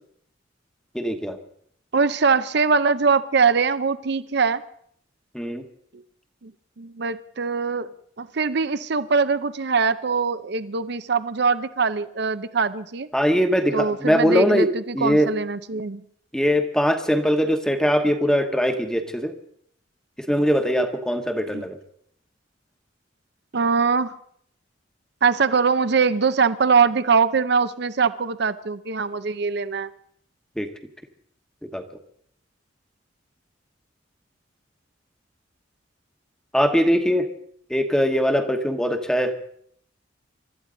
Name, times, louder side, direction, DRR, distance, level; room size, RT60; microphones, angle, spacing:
voice 1, 0.9-1.4 5.3-5.6 13.1-14.7 14.9-15.3 16.3-19.3 20.3-21.8 30.6-30.7 31.7-31.8 36.5-37.2 37.7-39.3, equal, 5° left, 6 dB, 1.2 m, -21 dB
voice 2, 1.9-4.6 5.9-6.0 6.4-6.5 6.8-7.9 8.2-13.1 13.7-16.0 21.5-21.6 23.5-24.1 25.2-29.9, right 5 dB, 60° right, 14 dB, 0.7 m, -22 dB
24.5 x 13.0 x 3.9 m, 0.65 s
head